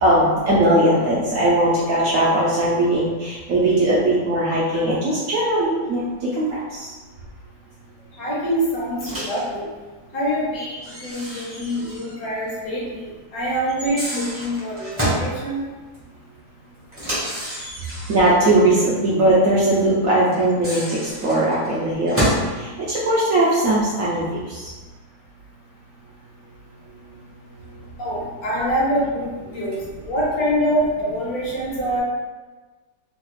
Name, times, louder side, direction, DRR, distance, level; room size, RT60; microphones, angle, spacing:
voice 1, 0.0-6.9 18.1-22.2 22.5-24.7, right 1 dB, 70° right, -6 dB, 0.8 m, -19 dB
voice 2, 8.1-9.7 10.1-15.6 28.0-32.0, equal, 65° left, -5 dB, 1.2 m, -25 dB
Microwave oven, 9.0-9.5 10.8-12.2 12.5-12.6 13.7-15.3 16.9-18.3 20.3-22.5, equal, 15° right, 0.5 m, -28 dB
3.2 x 2.3 x 3.0 m, 1.3 s
omnidirectional pair, 1.9 m